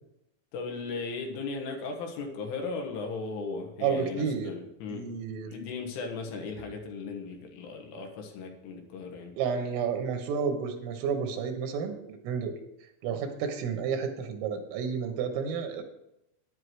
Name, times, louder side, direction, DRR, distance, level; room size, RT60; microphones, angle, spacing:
voice 1, 0.5-5.1 5.5-9.3, left 4 dB, 75° left, 3 dB, 3.9 m, -37 dB
voice 2, 3.8-4.5 4.9-5.5 6.6-6.7 9.4-12.5 13.0-15.8, right 6 dB, 80° right, 5 dB, 3.7 m, -31 dB
10.5 x 9.8 x 4.7 m, 0.83 s
omnidirectional pair, 5.9 m